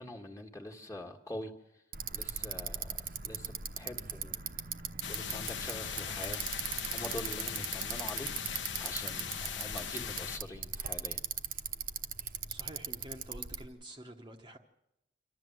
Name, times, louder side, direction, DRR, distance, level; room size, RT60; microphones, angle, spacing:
voice 1, 0.0-1.5 2.1-4.4 5.1-6.4 6.9-8.4 8.8-11.2, left 1 dB, 15° left, 1.7 m, -44 dB
Bicycle, 1.9-13.7, right 8 dB, 50° right, 1.0 m, -40 dB
sound 1, 5.0-10.4, left 7 dB, 80° left, 1.2 m, -39 dB
voice 2, 12.5-14.6, right 1 dB, 25° right, 1.0 m, -48 dB
27.5 x 12.5 x 7.8 m
head